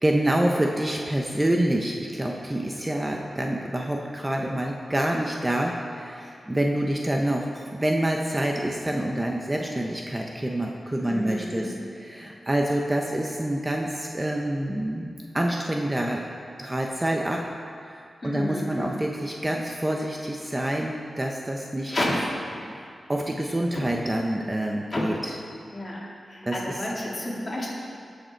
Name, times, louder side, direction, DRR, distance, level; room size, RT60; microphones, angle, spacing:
voice 1, 0.0-16.2 16.6-17.4 17.9-21.9 22.7-25.3 26.4-26.7, right 1 dB, 15° right, 0 dB, 0.7 m, -27 dB
voice 2, 11.0-11.7 18.2-19.0 21.9-22.1 23.7-23.8 24.9-25.0 25.7-26.0 26.3-27.7, left 1 dB, 35° left, -6 dB, 2.8 m, -31 dB
17.0 x 6.6 x 4.5 m, 2.4 s
wide cardioid pair, 110°, 0 cm